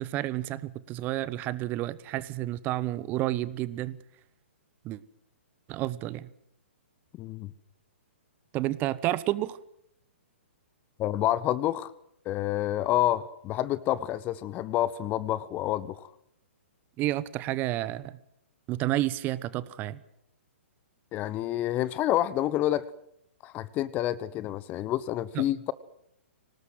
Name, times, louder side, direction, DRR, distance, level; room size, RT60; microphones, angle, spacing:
voice 1, 0.0-4.0 4.8-5.0 5.7-6.3 8.5-9.6 17.0-18.2 18.7-20.0 25.3-25.4, right 15 dB, 25° right, 18 dB, 1.0 m, -30 dB
voice 2, 7.2-7.5 11.0-11.9 12.2-16.1 21.1-22.8 23.4-25.7, left 13 dB, 25° left, 20 dB, 1.0 m, -28 dB
25.5 x 19.0 x 7.8 m, 0.76 s
figure-of-eight pair, 120°, 7 cm